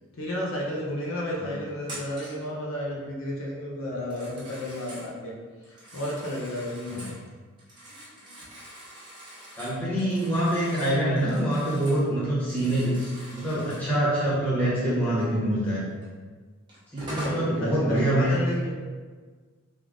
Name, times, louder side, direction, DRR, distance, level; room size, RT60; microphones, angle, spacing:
voice 1, 0.2-5.3 5.7-7.2 17.1-18.8, left 1 dB, 70° left, -3 dB, 0.6 m, -32 dB
Telephone, 1.8-2.5 4.0-5.1 5.6-7.2 7.6-12.1 12.4-13.9 16.0-16.1 16.7-17.4, equal, 20° right, 0.9 m, -43 dB
voice 2, 9.5-15.8 16.9-18.4, right 1 dB, 5° left, -10 dB, 1.1 m, -25 dB
3.6 x 2.4 x 3.6 m, 1.5 s
head